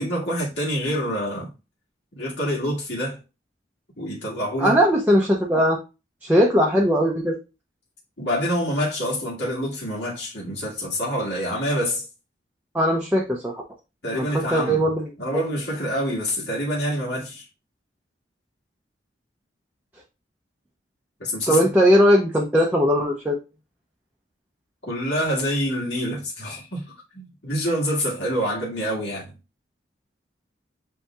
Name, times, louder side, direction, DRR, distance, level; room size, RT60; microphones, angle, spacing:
voice 1, 0.0-1.5 2.2-3.2 4.0-4.8 8.2-12.1 14.0-14.9 15.2-17.5 21.2-21.7 24.9-26.8 27.1-29.3, equal, 65° left, 1.9 m, -26 dB
voice 2, 4.6-5.8 6.2-7.4 12.7-13.6 14.1-15.1 21.5-23.4, equal, 10° right, 0.6 m, -19 dB
8.1 x 2.8 x 2.3 m
head